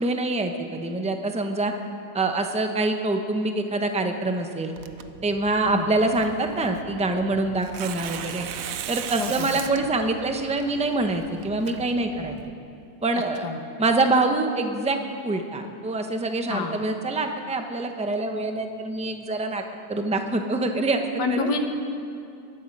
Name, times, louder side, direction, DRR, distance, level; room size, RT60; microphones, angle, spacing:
voice 1, 0.0-1.7 2.1-4.7 5.2-8.5 8.9-12.4 13.0-13.5 13.8-15.0 15.2-21.5, right 2 dB, 5° right, 5 dB, 0.6 m, -25 dB
Tearing, 4.8-12.5, right 9 dB, 65° right, 1.0 m, -39 dB
voice 2, 9.2-9.6 13.4-13.6 16.5-16.7 21.2-21.6, left 4 dB, 90° left, 5 dB, 1.9 m, -28 dB
22.5 x 12.0 x 5.4 m, 2.5 s
omnidirectional pair, 1.7 m